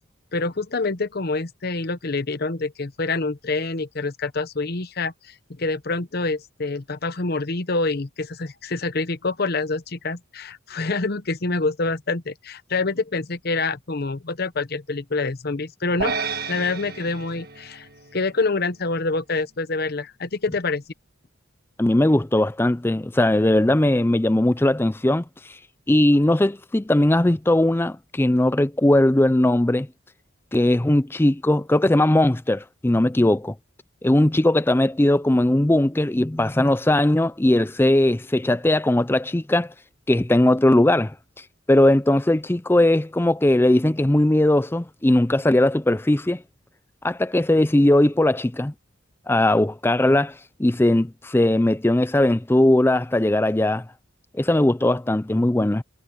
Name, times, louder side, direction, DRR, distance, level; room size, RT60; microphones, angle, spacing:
voice 1, 0.3-16.1 16.5-20.8, left 3 dB, 50° left, 0.9 m, -26 dB
sound 1, 16.0-18.5, right 4 dB, 50° right, 1.7 m, -31 dB
voice 2, 21.8-25.2 25.9-29.9 30.5-33.5 34.0-39.7 40.1-41.1 41.7-46.4 47.0-48.7 49.3-50.3 50.6-53.8 54.3-55.8, left 1 dB, 10° left, 0.4 m, -19 dB
head